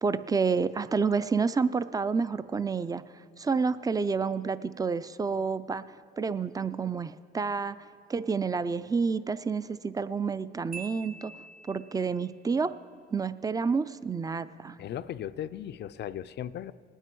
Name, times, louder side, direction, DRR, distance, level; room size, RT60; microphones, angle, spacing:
voice 1, 0.0-3.0 3.4-5.8 6.2-7.8 8.1-11.3 11.7-12.8 13.1-14.8, right 5 dB, 20° right, 15 dB, 0.4 m, -29 dB
Marimba xylophone, 10.7-12.1, right 4 dB, 45° right, 2.1 m, -45 dB
voice 2, 14.8-16.7, left 10 dB, 60° left, 14 dB, 0.4 m, -37 dB
19.5 x 9.1 x 4.6 m, 2.5 s
cardioid pair, 90°, 20 cm